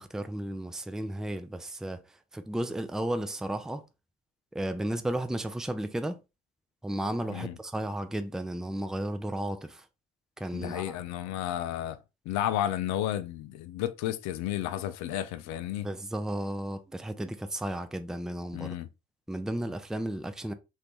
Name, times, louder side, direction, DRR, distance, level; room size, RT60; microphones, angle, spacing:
voice 1, 0.0-3.8 4.5-6.2 6.8-9.9 10.4-11.0 15.8-18.8 19.3-20.5, right 1 dB, ahead, 0.5 m, -34 dB
voice 2, 10.5-12.0 12.3-15.9 18.5-18.9, left 12 dB, 60° left, 0.5 m, -32 dB
2.8 x 2.7 x 3.5 m
hypercardioid pair, 50°, 31 cm